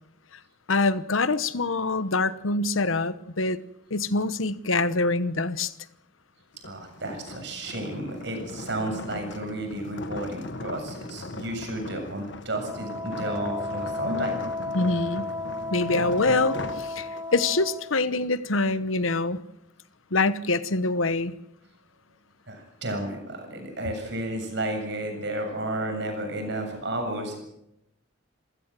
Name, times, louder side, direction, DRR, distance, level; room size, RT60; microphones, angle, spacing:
voice 1, 0.7-3.6 3.9-5.7 14.7-15.3 15.7-19.4 20.1-21.3, left 3 dB, 85° left, 15 dB, 1.1 m, -25 dB
sound 1, 6.5-17.5, left 2 dB, 60° left, 1.4 m, -39 dB
voice 2, 6.6-14.4 22.5-27.4, right 1 dB, 60° right, 4 dB, 7.4 m, -32 dB
Wind instrument woodwind instrument, 12.6-17.9, left 2 dB, 15° right, 3.2 m, -33 dB
28.0 x 16.0 x 7.6 m, 0.83 s
head